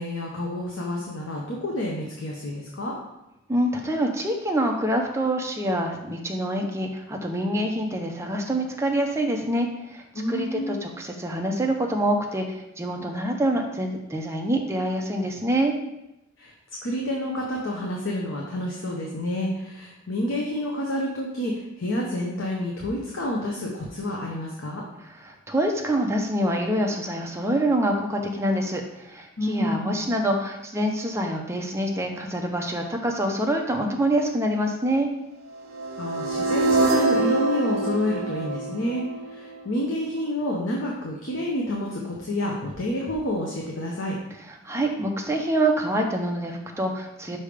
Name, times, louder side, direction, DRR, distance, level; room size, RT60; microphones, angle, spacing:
voice 1, 0.0-3.0 10.1-10.8 16.4-16.5 16.8-24.8 29.4-30.0 36.0-44.2, left 1 dB, 60° left, -2 dB, 0.8 m, -29 dB
voice 2, 3.5-12.4 12.8-15.7 25.1-35.1 44.6-47.4, right 1 dB, 15° right, 2 dB, 0.6 m, -26 dB
sound 1, 35.7-39.8, right 2 dB, 50° right, 1.2 m, -25 dB
5.5 x 3.4 x 4.9 m, 0.89 s
head